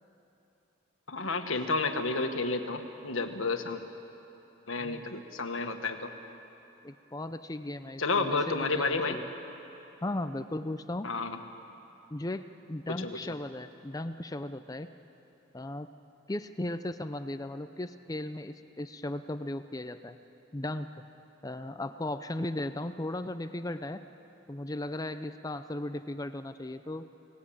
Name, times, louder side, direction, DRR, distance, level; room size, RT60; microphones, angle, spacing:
voice 1, 1.1-3.8 4.7-6.1 8.0-9.2 11.0-11.4 13.0-13.2, left 3 dB, 75° left, 5 dB, 1.6 m, -31 dB
voice 2, 4.8-5.1 6.8-9.3 10.0-11.1 12.1-14.9 15.5-15.9 16.3-20.2 20.5-20.9 21.4-24.0 24.5-27.1, left 1 dB, 15° left, 10 dB, 0.5 m, -36 dB
28.5 x 18.5 x 8.7 m, 3.0 s
head